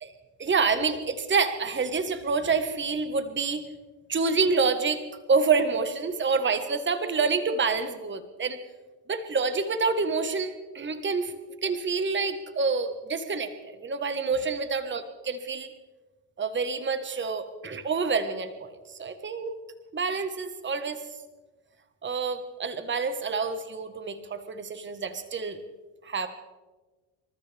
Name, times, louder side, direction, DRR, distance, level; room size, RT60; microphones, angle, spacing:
voice 1, 0.4-3.6 4.1-5.0 5.3-8.6 9.1-11.4 11.6-15.7 16.4-19.5 19.9-21.0 22.0-25.6 26.0-26.3, right 4 dB, 20° right, 9 dB, 1.5 m, -27 dB
27.5 x 13.5 x 3.5 m, 1.2 s
supercardioid pair, 85°, 50 cm